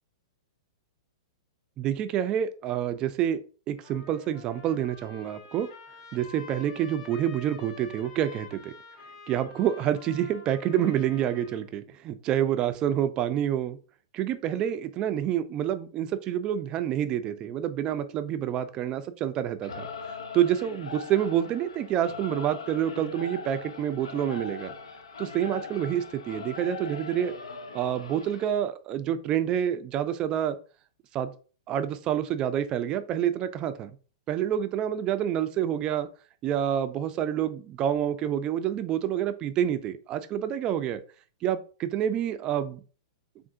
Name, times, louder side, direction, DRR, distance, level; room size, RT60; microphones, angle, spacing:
voice 1, 1.8-3.4 3.7-5.7 6.1-8.7 9.3-13.8 14.1-19.9 20.3-24.7 25.2-27.3 27.7-30.6 31.1-31.3 31.7-33.9 34.3-36.1 36.4-41.0 41.4-42.8, right 10 dB, 30° right, 11 dB, 0.3 m, -28 dB
Trumpet, 3.8-11.7, left 5 dB, 55° left, 1.5 m, -48 dB
Singing / Musical instrument, 19.6-28.5, left 4 dB, 85° left, 0.5 m, -40 dB
3.5 x 2.4 x 2.6 m, 0.38 s
hypercardioid pair, 120°, 3 cm